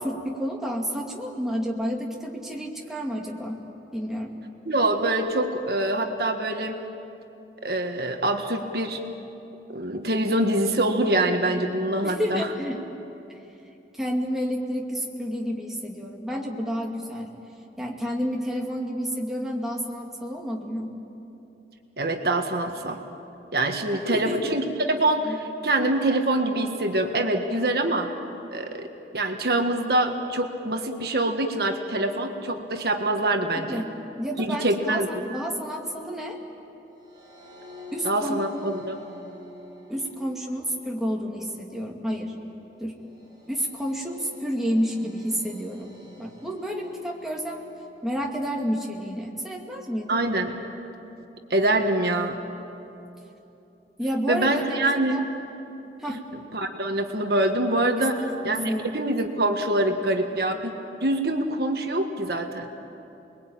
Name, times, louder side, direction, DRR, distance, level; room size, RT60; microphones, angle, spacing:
voice 1, 0.0-3.6 3.9-4.3 12.0-12.8 13.9-17.3 17.8-20.9 24.1-24.5 25.2-25.4 33.7-33.9 34.2-36.4 37.9-38.7 39.9-42.3 42.8-42.9 43.5-47.6 48.0-50.2 54.0-54.6 55.1-55.3 56.0-56.2 58.0-58.8, equal, ahead, -2 dB, 2.4 m, -30 dB
voice 2, 4.7-6.8 7.6-9.0 9.7-12.5 22.0-23.0 23.5-28.1 28.5-28.8 29.1-33.8 34.4-35.2 38.0-39.0 50.1-50.5 51.5-52.4 54.3-55.2 56.1-56.2 56.5-60.7 61.0-62.7, right 1 dB, 60° right, 4 dB, 1.6 m, -25 dB
sound 1, 36.9-48.3, left 2 dB, 25° right, 5.7 m, -48 dB
29.5 x 21.5 x 9.0 m, 2.9 s
head